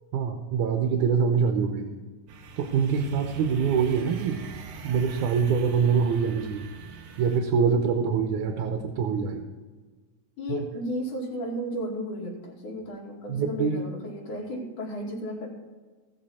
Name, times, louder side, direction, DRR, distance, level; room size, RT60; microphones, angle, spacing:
voice 1, 0.1-2.0 2.6-4.4 4.8-6.7 7.2-9.4 13.3-13.8, right 6 dB, 80° right, 5 dB, 2.3 m, -24 dB
sound 1, 2.3-7.4, right 4 dB, 60° right, 1.5 m, -45 dB
sound 2, 3.0-8.8, right 3 dB, 35° left, 3.6 m, -49 dB
voice 2, 10.4-15.5, equal, 85° left, -2 dB, 4.0 m, -33 dB
17.0 x 6.9 x 4.2 m, 1.4 s
omnidirectional pair, 3.4 m